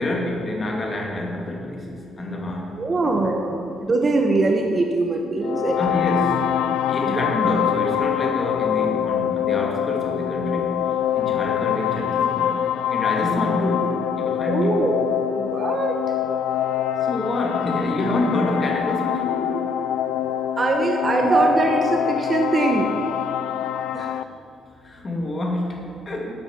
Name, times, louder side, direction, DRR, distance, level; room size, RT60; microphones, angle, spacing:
voice 1, 0.0-3.2 5.8-6.5 6.9-12.6 12.9-14.8 17.0-19.6 24.8-26.3, left 1 dB, 35° left, 0 dB, 2.2 m, -27 dB
voice 2, 2.8-5.9 7.0-7.3 14.5-16.0 20.6-22.9 23.9-24.1 26.2-26.3, right 2 dB, 35° right, 2 dB, 1.0 m, -22 dB
sound 1, 5.4-24.2, left 11 dB, 80° left, 0.3 m, -25 dB
8.8 x 8.6 x 7.2 m, 2.6 s
cardioid pair, 90°, 0 cm